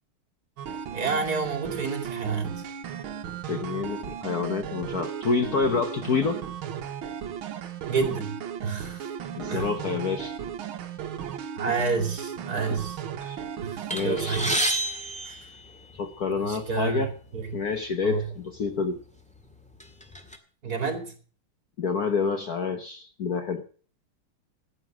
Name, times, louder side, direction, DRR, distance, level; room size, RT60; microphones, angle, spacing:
sound 1, 0.6-14.6, right 8 dB, 70° right, 1.9 m, -36 dB
voice 1, 0.9-2.6 7.9-9.1 9.5-9.7 11.6-13.0 13.6-14.5 15.2-15.5 16.3-17.6 18.0-18.3 20.6-21.1, right 4 dB, 45° right, 6 dB, 3.1 m, -30 dB
voice 2, 3.5-6.4 9.3-10.4 12.7-12.8 13.2-13.4 13.9-14.4 16.0-17.1 17.5-19.0 21.8-23.6, left 5 dB, 50° left, 7 dB, 1.3 m, -28 dB
sound 2, 13.9-16.2 17.1-17.2 17.5-17.7 18.5-18.7 19.2-20.4, right 1 dB, 5° left, 1.6 m, -30 dB
14.5 x 9.5 x 6.1 m, 0.42 s
omnidirectional pair, 2.4 m